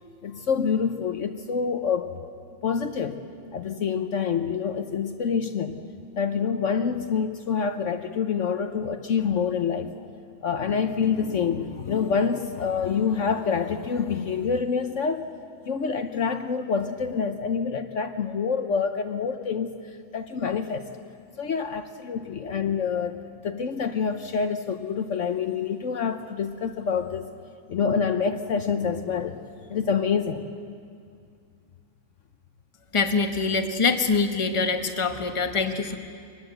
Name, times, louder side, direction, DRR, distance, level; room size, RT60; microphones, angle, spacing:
voice 1, 0.2-2.3 2.6-3.2 3.5-5.8 6.2-9.9 10.4-15.3 15.6-19.7 20.1-20.9 21.4-27.3 27.7-30.4, left 6 dB, 60° left, 8 dB, 1.1 m, -27 dB
voice 2, 32.9-36.0, left 4 dB, 25° left, 6 dB, 1.1 m, -24 dB
23.0 x 20.0 x 7.9 m, 2.2 s
omnidirectional pair, 1.5 m